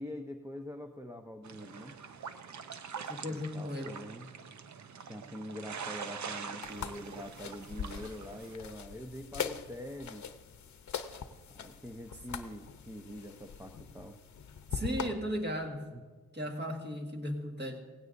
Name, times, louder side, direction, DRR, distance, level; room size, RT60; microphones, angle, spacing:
voice 1, 0.0-2.0 3.3-4.3 5.1-10.3 11.5-14.2 15.9-16.0, left 1 dB, 10° right, 4 dB, 0.6 m, -44 dB
sound 1, 1.4-8.6, right 6 dB, 55° right, 0.7 m, -44 dB
voice 2, 3.1-4.0 14.7-15.9 16.3-17.8, equal, 30° right, 2 dB, 1.8 m, -36 dB
sound 2, 6.6-15.1, left 7 dB, 55° left, 0.8 m, -42 dB
17.5 x 16.0 x 2.6 m, 1.4 s
wide cardioid pair, 115°, 34 cm